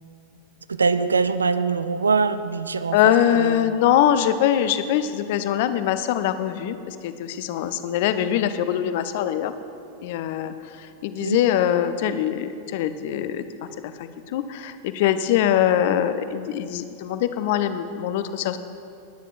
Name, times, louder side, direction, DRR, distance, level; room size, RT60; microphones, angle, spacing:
voice 1, 0.7-3.6 11.2-11.4, right 4 dB, 75° right, 13 dB, 0.4 m, -23 dB
voice 2, 2.9-9.5 10.0-13.4 13.8-18.6, left 10 dB, 50° left, 11 dB, 0.5 m, -23 dB
20.0 x 9.1 x 2.5 m, 2.5 s
figure-of-eight pair, 90°, 0 cm